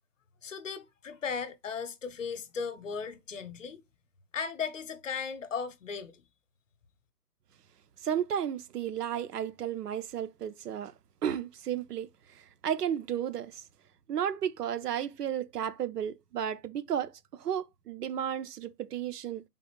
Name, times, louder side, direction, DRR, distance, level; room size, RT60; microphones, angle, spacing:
voice 1, 0.4-3.8 4.3-6.2, left 6 dB, 55° left, 0.7 m, -36 dB
voice 2, 8.0-10.9 11.2-12.1 12.6-13.6 14.1-19.4, right 9 dB, 75° right, 0.6 m, -33 dB
4.4 x 3.9 x 3.0 m
hypercardioid pair, 175°, 48 cm